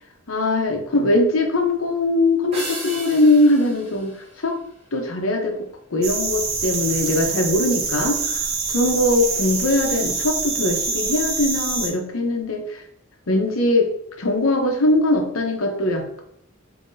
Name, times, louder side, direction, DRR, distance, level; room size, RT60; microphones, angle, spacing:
voice 1, 0.3-4.6 4.9-5.7 5.9-12.8 13.3-13.9 14.2-16.2, left 1 dB, 85° left, 3 dB, 0.8 m, -21 dB
sound 1, 2.5-5.2, right 1 dB, 30° right, 1.4 m, -36 dB
sound 2, 6.0-11.9, right 4 dB, 80° right, 1.0 m, -25 dB
5.6 x 2.9 x 2.6 m, 0.72 s
head